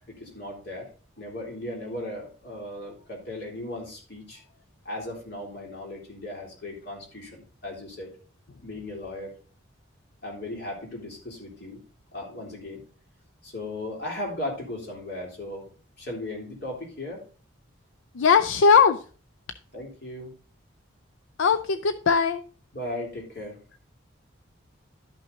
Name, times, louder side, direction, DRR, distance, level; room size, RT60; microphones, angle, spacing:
voice 1, 0.1-0.9 1.2-4.4 4.8-8.2 8.6-9.3 10.2-11.8 12.1-12.8 13.4-15.7 16.0-17.2 19.7-20.3 22.7-23.6, left 1 dB, 55° left, -1 dB, 3.2 m, -37 dB
voice 2, 18.1-19.0 21.4-22.4, left 6 dB, 75° left, 11 dB, 0.5 m, -19 dB
12.0 x 5.8 x 3.9 m, 0.40 s
head